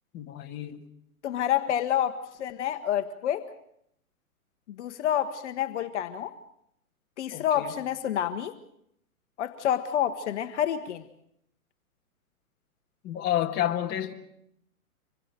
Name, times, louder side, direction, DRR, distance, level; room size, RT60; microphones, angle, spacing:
voice 1, 0.1-0.8 7.3-7.7 13.0-14.1, left 11 dB, 25° left, 1.7 m, -30 dB
voice 2, 1.2-3.4 4.8-6.3 7.2-8.5 9.4-11.0, left 10 dB, 50° left, 1.2 m, -28 dB
25.5 x 21.0 x 6.7 m
hypercardioid pair, 140°, 43 cm